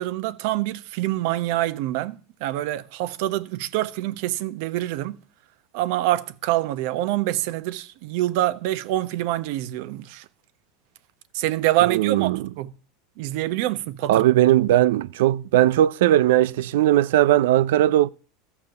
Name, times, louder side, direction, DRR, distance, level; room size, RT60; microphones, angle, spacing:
voice 1, 0.0-5.2 5.7-10.2 11.3-12.7 13.2-14.2, right 15 dB, 60° right, 1.0 m, -26 dB
voice 2, 11.8-12.5 14.1-18.1, right 13 dB, 80° right, 0.5 m, -18 dB
14.0 x 7.2 x 6.6 m
supercardioid pair, 155°, 0 cm